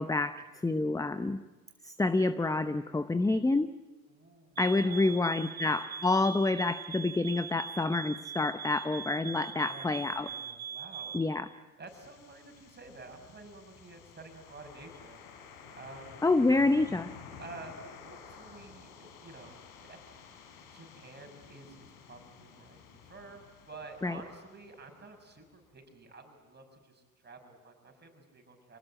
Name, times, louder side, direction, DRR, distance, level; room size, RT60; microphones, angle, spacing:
voice 1, 0.0-1.4 1.8-3.7 4.6-10.3 11.1-11.5 16.2-17.1 24.0-24.2, left 2 dB, 10° left, 11 dB, 0.8 m, -28 dB
voice 2, 4.1-5.8 6.1-6.3 9.6-9.9 10.2-11.2 11.8-15.5 15.8-16.2 17.4-20.3 20.7-28.8, right 3 dB, 25° right, 3 dB, 6.3 m, -50 dB
sound 1, 4.6-11.3, right 7 dB, 40° right, 3.2 m, -42 dB
sound 2, 11.9-25.7, left 6 dB, 60° left, 3.5 m, -52 dB
25.5 x 19.0 x 8.9 m, 1.2 s
hypercardioid pair, 75°, 42 cm